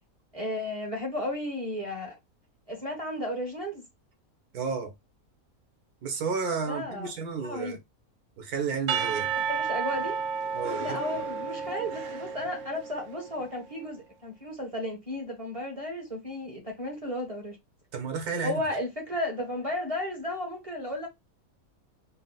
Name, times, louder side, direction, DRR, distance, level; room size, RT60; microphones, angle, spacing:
voice 1, 0.3-2.1 2.7-3.8 6.7-7.1 7.4-7.8 9.3-10.2 10.8-17.6 18.4-21.1, left 1 dB, 25° right, 1.1 m, -34 dB
voice 2, 4.5-4.9 6.0-7.8 8.4-9.3 10.5-11.0 17.9-18.6, right 5 dB, 90° right, 1.6 m, -32 dB
Percussion / Church bell, 8.9-13.0, right 6 dB, 65° right, 1.0 m, -31 dB
4.3 x 2.2 x 3.8 m
omnidirectional pair, 1.6 m